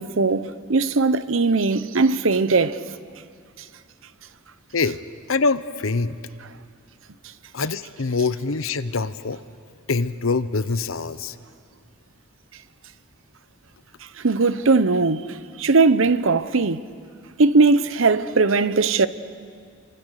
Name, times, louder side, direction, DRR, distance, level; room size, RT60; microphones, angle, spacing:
voice 1, 0.0-2.8 14.2-16.8 17.4-19.1, right 3 dB, 70° right, 0.8 m, -19 dB
voice 2, 5.3-6.2 7.5-9.4 9.9-11.3, left 4 dB, 75° left, 0.8 m, -24 dB
28.5 x 25.5 x 6.6 m
head